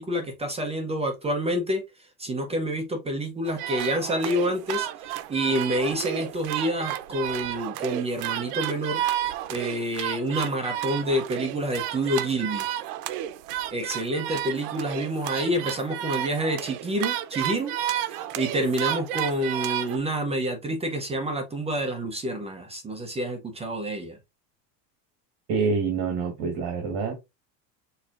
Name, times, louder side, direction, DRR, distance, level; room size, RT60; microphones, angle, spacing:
voice 1, 0.0-1.8 2.2-9.0 9.5-12.7 13.7-24.2, right 1 dB, 15° right, 0.7 m, -28 dB
sound 1, 3.5-20.0, right 12 dB, 80° right, 0.7 m, -32 dB
voice 2, 25.5-27.1, right 5 dB, 50° right, 1.5 m, -26 dB
6.5 x 2.9 x 2.5 m
supercardioid pair, 150°, 46 cm